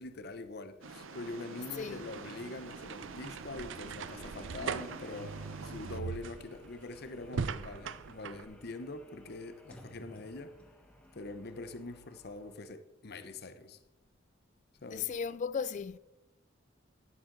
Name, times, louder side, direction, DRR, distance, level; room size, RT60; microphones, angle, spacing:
voice 1, 0.0-10.6 11.1-13.8 14.8-15.1, left 2 dB, 55° left, 0.8 m, -44 dB
sound 1, 0.8-6.0, right 4 dB, 90° right, 0.8 m, -47 dB
Key Unlocking & Opening Door, 1.9-8.5, right 5 dB, 65° right, 0.5 m, -41 dB
sound 2, 3.9-12.6, equal, 5° left, 1.6 m, -57 dB
voice 2, 14.9-16.0, left 6 dB, 40° left, 0.3 m, -35 dB
12.0 x 10.0 x 3.9 m
head